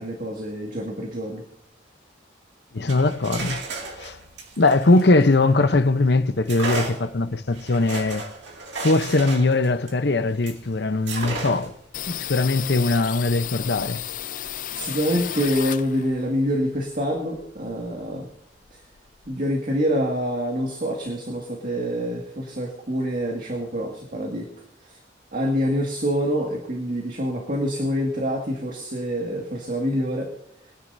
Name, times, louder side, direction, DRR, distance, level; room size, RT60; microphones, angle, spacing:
voice 1, 0.0-1.4 14.8-18.3 19.3-24.5 24.9-25.0 25.3-30.3, equal, 45° right, 2.1 m, -26 dB
voice 2, 2.7-3.6 3.9-4.2 4.6-8.2 8.8-11.7 12.1-14.0, left 2 dB, 60° left, 0.8 m, -21 dB
sound 1, 2.8-5.8 6.5-10.6 11.1-11.8, right 3 dB, 70° right, 2.4 m, -34 dB
sound 2, 11.9-16.3 16.6-18.0 18.3-18.4 18.6-19.4, left 11 dB, 45° left, 0.4 m, -33 dB
23.5 x 10.5 x 2.7 m
head